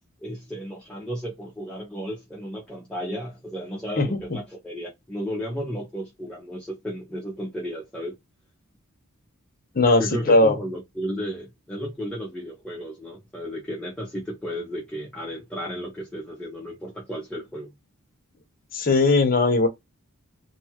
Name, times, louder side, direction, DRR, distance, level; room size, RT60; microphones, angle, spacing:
voice 1, 0.2-8.2 10.0-17.7, equal, 5° left, 0.7 m, -34 dB
voice 2, 18.7-19.7, left 2 dB, 40° left, 0.7 m, -18 dB
2.7 x 2.4 x 2.8 m
head